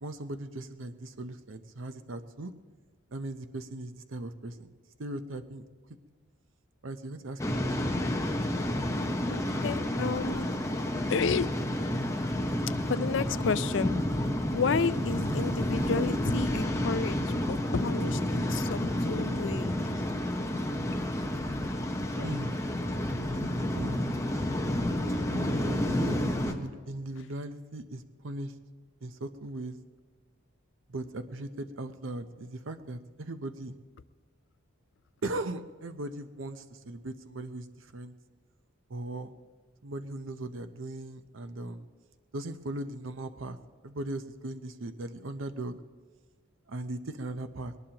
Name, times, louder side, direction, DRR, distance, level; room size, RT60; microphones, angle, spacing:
voice 1, 0.0-2.5 3.1-5.6 6.8-8.2 15.3-15.4 22.2-22.7 23.3-24.0 25.3-28.5 29.0-29.8 30.9-33.8 35.2-38.1 38.9-39.3 39.8-41.9 42.3-43.6 43.8-45.8 46.7-47.7, right 2 dB, 75° right, 9 dB, 0.7 m, -38 dB
Waves surf, 7.4-26.5, left 1 dB, 15° left, 1.0 m, -30 dB
voice 2, 9.3-10.5 11.1-11.5 12.9-13.9 14.5-19.8 22.1-22.3, left 5 dB, 65° left, 15 dB, 0.5 m, -31 dB
21.0 x 19.0 x 2.9 m, 1.5 s
head